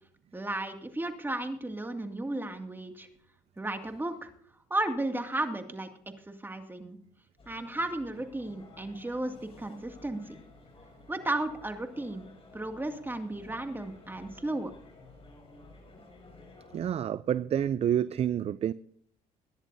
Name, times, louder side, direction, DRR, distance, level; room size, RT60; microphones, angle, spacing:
voice 1, 0.3-3.1 3.6-4.3 4.7-5.9 6.3-7.0 7.5-10.2 11.1-12.3 12.5-14.7, right 2 dB, 15° right, 2.2 m, -34 dB
sound 1, 7.4-16.9, left 2 dB, 35° left, 6.2 m, -54 dB
voice 2, 16.7-18.7, right 10 dB, 40° right, 0.4 m, -28 dB
22.5 x 11.0 x 2.7 m
supercardioid pair, 75°, 15 cm